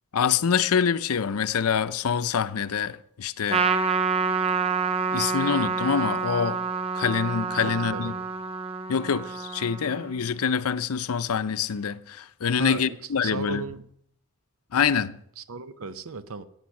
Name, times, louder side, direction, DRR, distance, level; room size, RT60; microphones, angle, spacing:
voice 1, 0.1-3.6 5.1-6.6 6.9-8.1 8.9-13.6 14.7-15.1, left 7 dB, 80° left, 0.6 m, -25 dB
Trumpet, 3.5-10.2, right 5 dB, 25° right, 0.7 m, -27 dB
voice 2, 7.6-8.2 12.6-13.0 13.2-13.9 15.4-16.4, right 4 dB, 70° right, 0.7 m, -36 dB
14.5 x 9.3 x 5.9 m
head